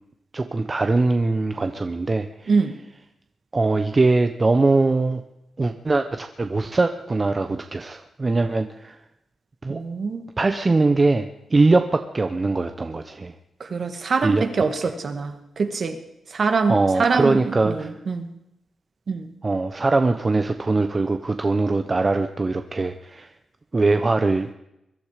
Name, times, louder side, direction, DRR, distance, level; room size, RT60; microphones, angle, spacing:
voice 1, 0.3-2.5 3.5-5.2 5.6-9.0 9.6-9.8 10.4-13.3 14.2-14.4 16.7-17.9 19.4-23.3 23.7-24.5, right 3 dB, 30° right, 7 dB, 0.9 m, -21 dB
voice 2, 9.7-10.2 13.6-16.0 16.3-18.3 19.1-19.3, right 4 dB, 50° right, 7 dB, 2.0 m, -24 dB
22.5 x 12.0 x 5.1 m, 0.84 s
wide cardioid pair, 110°, 0 cm